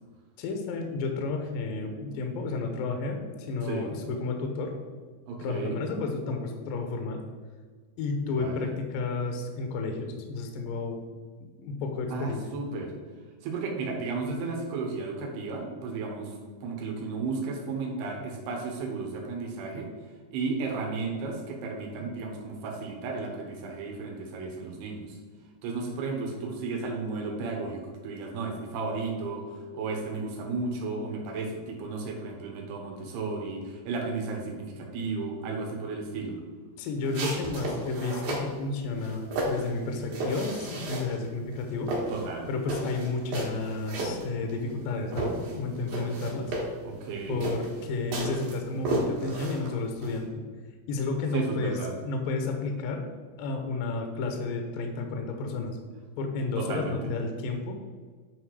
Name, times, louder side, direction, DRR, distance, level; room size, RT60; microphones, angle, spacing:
voice 1, 0.4-4.7 5.4-7.2 8.0-11.0 11.6-12.5 22.0-22.1 36.8-41.9 42.5-46.5 47.3-50.4 50.9-51.8 52.0-53.0 53.4-55.8 56.2-57.8, left 3 dB, 75° left, 4 dB, 2.2 m, -32 dB
voice 2, 5.3-5.8 8.2-8.7 12.1-12.9 13.4-16.3 16.6-19.9 20.3-25.2 25.6-29.4 29.7-36.4 42.1-42.5 46.8-47.4 51.3-51.9 56.6-57.0, right 4 dB, 85° right, 1 dB, 3.3 m, -34 dB
sound 1, 37.0-38.5 39.0-41.2 41.5-44.8 45.1-50.2, right 2 dB, 65° right, 3.2 m, -33 dB
9.1 x 4.2 x 4.8 m, 1.5 s
omnidirectional pair, 4.6 m